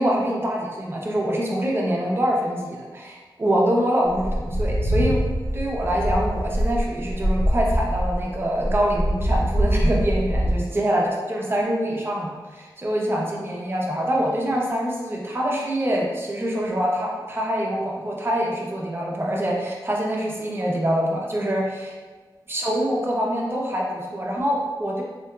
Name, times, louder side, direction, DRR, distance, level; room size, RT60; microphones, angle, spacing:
voice 1, 0.0-5.2 5.5-21.9 22.5-25.0, equal, 30° right, -2 dB, 0.6 m, -25 dB
sound 1, 4.1-10.5, equal, 50° left, 0.9 m, -23 dB
3.7 x 2.7 x 2.2 m, 1.3 s
wide cardioid pair, 105°, 8 cm